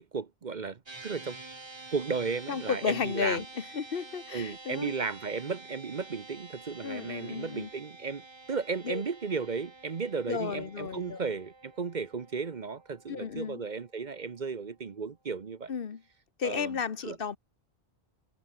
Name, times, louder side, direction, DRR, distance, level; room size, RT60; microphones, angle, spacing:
voice 1, 0.0-1.4 1.9-3.4 4.3-15.7 16.4-17.2, right 5 dB, 45° right, 1.0 m, -35 dB
sound 1, 0.9-14.4, right 3 dB, 25° right, 1.3 m, -49 dB
voice 2, 2.5-4.9 6.8-7.7 8.8-9.0 10.3-11.2 13.1-13.6 15.7-16.0 16.4-17.4, left 6 dB, 60° left, 1.2 m, -33 dB
omnidirectional pair, 1.1 m